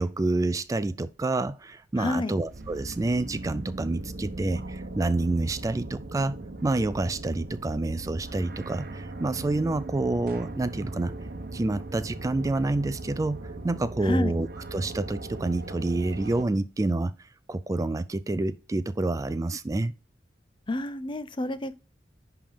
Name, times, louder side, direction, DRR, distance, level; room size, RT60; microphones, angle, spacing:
voice 1, 0.0-6.4 6.6-11.1 11.5-13.4 13.6-17.1 17.5-19.9, right 2 dB, 20° right, 0.3 m, -28 dB
voice 2, 2.0-2.3 14.0-14.3 20.7-21.8, left 2 dB, 30° left, 0.6 m, -29 dB
sound 1, 2.4-16.4, right 2 dB, 55° right, 0.9 m, -39 dB
10.5 x 3.5 x 5.1 m
head